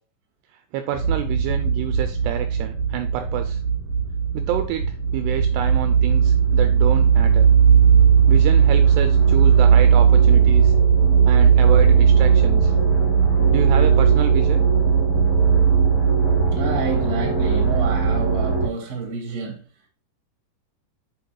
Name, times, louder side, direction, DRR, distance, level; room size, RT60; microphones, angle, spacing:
voice 1, 0.7-3.6 4.3-7.5 8.3-10.7 11.3-12.7 13.5-14.7, right 10 dB, 85° right, 2.4 m, -28 dB
sound 1, 0.9-18.7, right 6 dB, 45° left, 1.1 m, -17 dB
voice 2, 11.3-11.6 16.5-19.6, right 4 dB, 45° right, 1.2 m, -29 dB
8.5 x 5.8 x 2.3 m
omnidirectional pair, 5.2 m